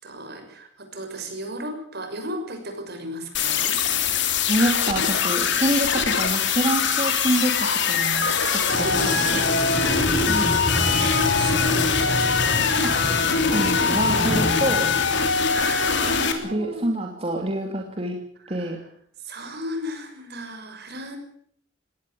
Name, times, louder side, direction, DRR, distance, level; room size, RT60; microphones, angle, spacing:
voice 1, 0.0-3.8 6.9-7.2 8.7-9.9 10.9-12.6 15.5-16.9 18.5-18.8 19.2-21.2, equal, 55° right, 6 dB, 6.4 m, -35 dB
sound 1, 3.3-16.3, left 6 dB, 60° left, 3.4 m, -22 dB
voice 2, 4.5-8.3 8.8-9.0 10.2-10.5 12.8-12.9 13.5-14.9 16.4-18.2 18.5-18.8, right 1 dB, 30° right, 0 dB, 2.9 m, -26 dB
sound 2, 8.7-16.1, equal, 30° left, 7.8 m, -29 dB
21.5 x 18.0 x 7.9 m, 0.64 s
head